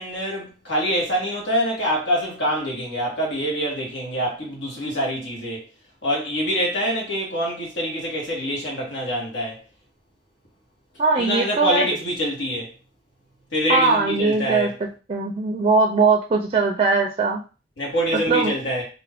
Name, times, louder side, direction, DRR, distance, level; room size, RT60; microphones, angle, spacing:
voice 1, 0.0-5.6 6.0-9.6 11.1-12.7 13.5-14.8 17.8-18.8, equal, 75° left, 1.4 m, -25 dB
voice 2, 11.0-11.9 13.7-14.7 15.1-17.4 18.3-18.5, right 4 dB, 30° right, 0.4 m, -20 dB
2.5 x 2.5 x 3.3 m
head